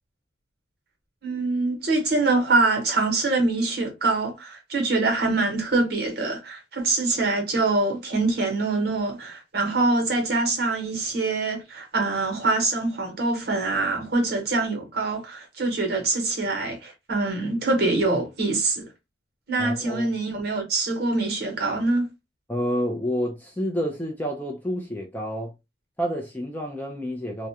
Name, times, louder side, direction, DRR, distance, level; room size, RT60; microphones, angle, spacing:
voice 1, 1.2-18.9 19.5-22.0, right 3 dB, 55° right, 0.9 m, -24 dB
voice 2, 19.6-20.1 22.5-25.5 26.0-27.5, equal, 10° left, 0.4 m, -29 dB
2.3 x 2.1 x 2.7 m
head